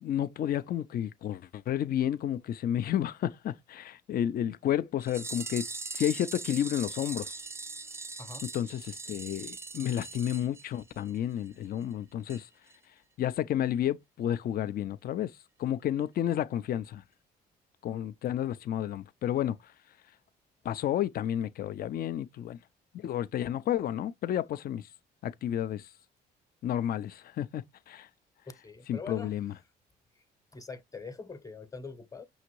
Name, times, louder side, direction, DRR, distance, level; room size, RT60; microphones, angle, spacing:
voice 1, 0.0-5.7 5.9-7.3 8.5-12.5 13.2-15.3 15.6-17.0 17.8-19.6 20.6-22.6 22.9-24.8 25.2-25.8 26.6-28.1 28.9-29.5, left 11 dB, 50° left, 0.5 m, -31 dB
sound 1, 5.0-11.2 11.5-11.6 11.8-11.9 12.3-12.4 12.7-12.8, right 3 dB, 15° right, 0.4 m, -41 dB
voice 2, 28.5-29.4 30.2-30.3 30.5-32.2, left 4 dB, 20° left, 1.0 m, -43 dB
5.6 x 2.6 x 3.0 m
supercardioid pair, 65°, 19 cm